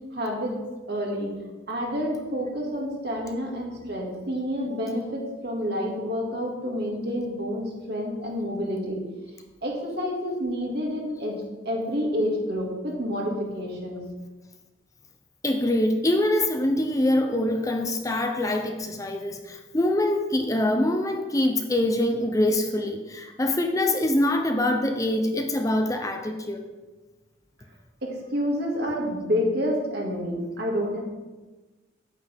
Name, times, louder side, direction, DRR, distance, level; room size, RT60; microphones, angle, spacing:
voice 1, 0.1-0.5 0.9-1.4 1.7-9.1 9.6-11.4 11.6-14.0 28.0-31.0, equal, 60° right, -2 dB, 2.3 m, -28 dB
voice 2, 15.4-26.7, left 1 dB, 20° left, 4 dB, 0.6 m, -24 dB
9.7 x 8.8 x 3.6 m, 1.2 s
head